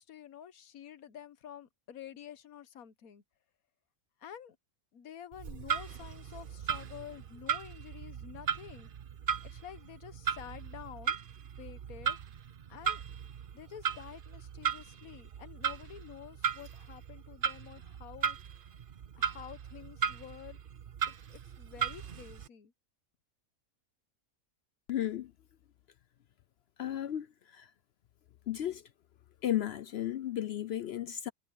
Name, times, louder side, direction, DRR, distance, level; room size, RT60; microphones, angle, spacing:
voice 1, 0.0-3.2 4.2-4.6 4.9-8.9 9.4-11.2 11.6-12.2 12.7-13.0 13.5-18.4 19.2-20.6 21.1-22.7, left 10 dB, 85° left, 1.5 m, -49 dB
Clock, 5.3-22.5, right 7 dB, 45° right, 0.8 m, -37 dB
voice 2, 24.9-25.3 26.8-27.7 28.5-28.9 29.4-31.3, left 11 dB, 60° left, 0.7 m, -34 dB
omnidirectional pair, 1.5 m